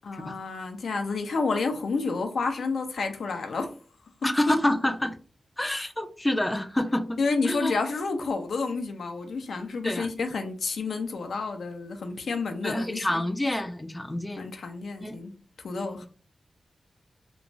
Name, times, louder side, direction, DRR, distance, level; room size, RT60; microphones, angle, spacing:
voice 1, 0.0-3.7 4.5-4.6 7.2-13.2 14.4-15.3 15.6-16.1, left 4 dB, 85° left, 0.5 m, -30 dB
voice 2, 4.2-5.2 5.6-7.2 7.4-7.7 9.8-10.1 12.6-14.5 15.0-15.2 15.8-16.1, left 1 dB, 15° left, 0.4 m, -27 dB
3.0 x 2.2 x 2.6 m
cardioid pair, 70°, 0 cm